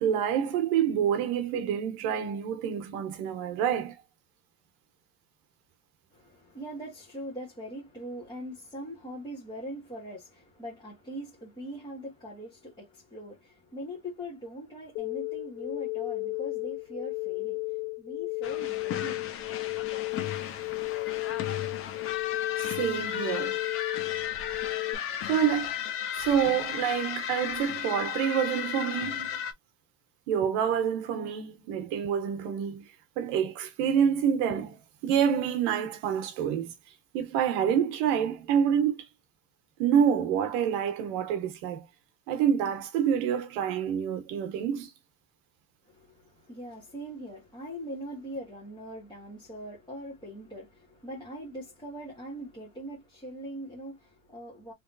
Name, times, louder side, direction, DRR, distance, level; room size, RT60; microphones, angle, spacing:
voice 1, 0.0-3.9 22.6-23.6 25.2-25.8 26.2-29.4 30.3-32.9 33.2-36.7 37.1-39.1 39.8-41.9 42.3-44.9, right 8 dB, 65° right, 1.1 m, -27 dB
voice 2, 6.1-19.3 45.9-54.7, equal, 10° left, 1.2 m, -41 dB
sound 1, 15.0-25.0, left 27 dB, 90° left, 0.8 m, -34 dB
sound 2, 18.4-29.5, left 9 dB, 30° left, 0.5 m, -35 dB
3.4 x 3.0 x 2.5 m
cardioid pair, 150°, 50 cm